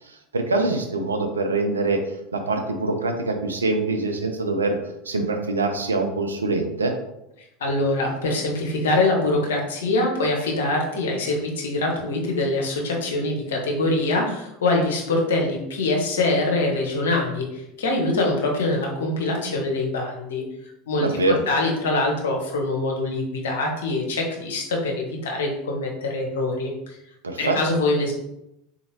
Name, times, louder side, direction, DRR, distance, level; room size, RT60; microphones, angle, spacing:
voice 1, 0.3-2.0 2.3-4.8 5.1-6.9 21.0-21.4 27.2-27.6, right 2 dB, 85° right, 5 dB, 0.5 m, -24 dB
voice 2, 7.6-20.5 20.9-27.0 27.4-28.1, left 2 dB, 70° left, 1 dB, 0.9 m, -24 dB
3.9 x 2.8 x 2.9 m, 0.84 s
figure-of-eight pair, 80°, 0 cm